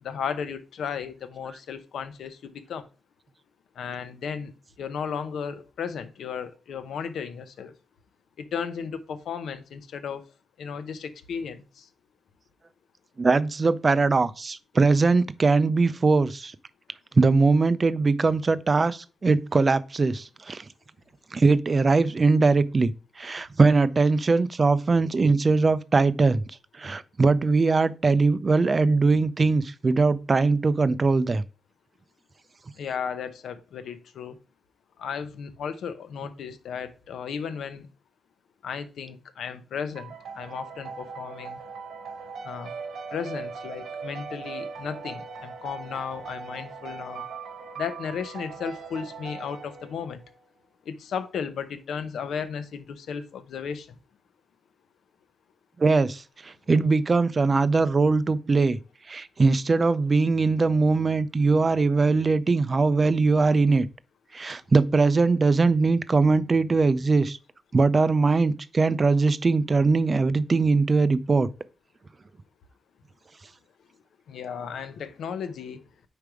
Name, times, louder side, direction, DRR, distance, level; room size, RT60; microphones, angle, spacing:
voice 1, 0.0-2.8 3.8-4.5 4.8-7.7 8.4-10.2 10.6-11.9 32.8-34.4 35.0-37.9 38.6-41.6 42.4-42.7 43.1-47.3 47.8-50.2 50.9-54.0 74.3-75.8, left 7 dB, 80° left, 0.7 m, -34 dB
voice 2, 13.2-16.5 17.2-20.6 21.3-26.4 26.8-31.4 55.8-58.8 59.1-63.9 64.3-67.4 67.7-71.5, right 3 dB, 30° right, 0.4 m, -21 dB
sound 1, 40.0-50.3, right 5 dB, 75° right, 1.2 m, -39 dB
5.2 x 4.6 x 4.8 m
wide cardioid pair, 130°, 0 cm